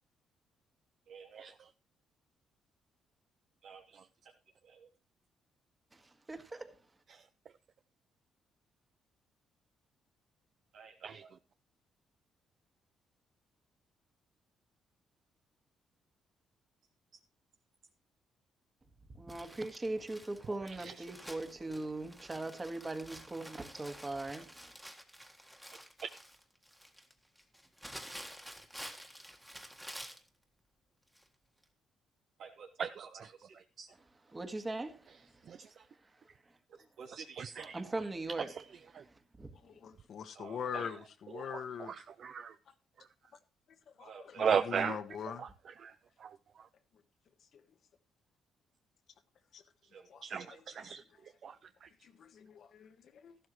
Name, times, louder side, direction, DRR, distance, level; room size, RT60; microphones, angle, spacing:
voice 1, 1.1-1.5 3.6-4.0 4.6-4.9 10.7-11.3 32.4-33.5 33.9-34.0 36.7-37.7 40.3-40.8 44.0-44.6 49.8-50.6, right 6 dB, 80° right, 3.0 m, -53 dB
voice 2, 5.9-6.8 19.1-24.7 34.3-35.2 37.7-38.5 38.9-39.5, right 2 dB, 20° right, 1.8 m, -40 dB
Crumpling crinkling, 19.3-30.3 31.1-31.3 31.6-31.7, equal, 5° right, 1.7 m, -50 dB
voice 3, 20.5-21.1 32.8-33.3 33.8-33.9 35.5-35.7 37.1-38.0 38.4-38.7 38.9-39.0 40.7-41.0 41.3-42.5 44.4-45.0 45.4-45.9 46.2-46.3 50.2-51.0 51.4-51.6 51.8-51.9, right 7 dB, 55° right, 0.5 m, -37 dB
voice 4, 39.6-41.9 43.9-45.5 47.5-47.6 49.5-49.6 50.1-50.7 51.2-51.3 52.0-53.4, left 7 dB, 60° left, 1.3 m, -43 dB
13.5 x 12.0 x 3.1 m
cardioid pair, 90°, 0 cm